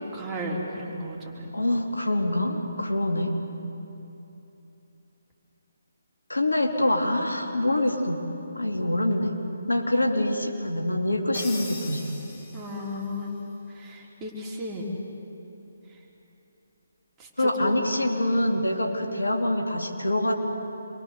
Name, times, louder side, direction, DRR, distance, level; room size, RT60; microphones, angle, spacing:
voice 1, 0.1-1.8 12.5-13.4 13.7-14.9 17.2-17.8 18.3-18.5, left 1 dB, 15° right, -3 dB, 3.8 m, -35 dB
voice 2, 1.5-3.3 6.3-8.2 8.5-9.4 9.7-12.2 17.4-20.3, left 1 dB, 80° left, 2 dB, 2.7 m, -25 dB
Crash cymbal, 11.3-13.0, left 2 dB, 25° left, 4.6 m, -40 dB
27.0 x 23.0 x 6.7 m, 3.0 s
figure-of-eight pair, 145°, 0 cm